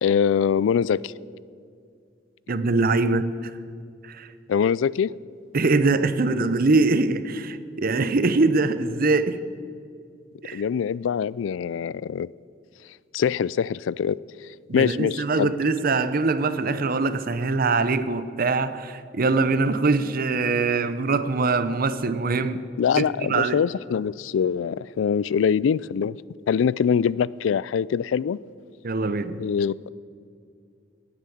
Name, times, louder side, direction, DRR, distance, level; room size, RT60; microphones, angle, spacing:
voice 1, 0.0-1.1 4.5-5.1 10.5-12.3 13.1-14.2 14.7-15.5 22.8-26.2 26.5-28.4 29.4-29.7, left 7 dB, 80° left, 21 dB, 0.3 m, -23 dB
voice 2, 2.5-3.5 4.0-4.3 5.5-9.4 10.4-10.6 14.7-22.6 23.0-23.6 28.8-29.4, right 3 dB, 50° right, 13 dB, 0.7 m, -23 dB
17.5 x 9.4 x 7.1 m, 2.3 s
head